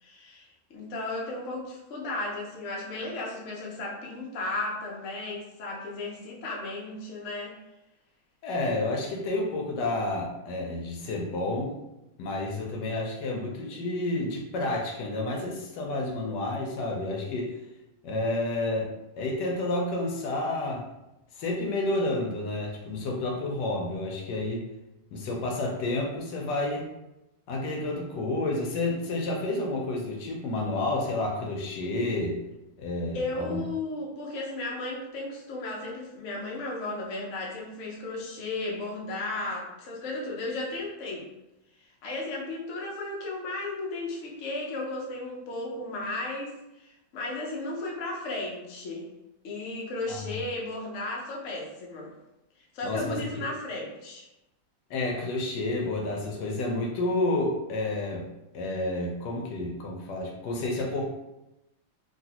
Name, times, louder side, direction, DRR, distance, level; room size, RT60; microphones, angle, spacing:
voice 1, 0.0-7.6 33.1-41.3 42.0-46.9 47.1-49.1 49.4-52.1 52.7-54.3, left 2 dB, 90° left, -2 dB, 0.6 m, -34 dB
voice 2, 8.4-11.7 12.2-17.5 18.0-18.9 19.2-20.8 21.4-24.7 25.1-26.8 27.5-32.4 32.8-33.6 50.1-50.3 52.8-53.5 54.9-58.2 58.5-61.1, left 2 dB, 70° left, 0 dB, 1.1 m, -30 dB
3.1 x 2.6 x 2.8 m, 0.92 s
omnidirectional pair, 2.3 m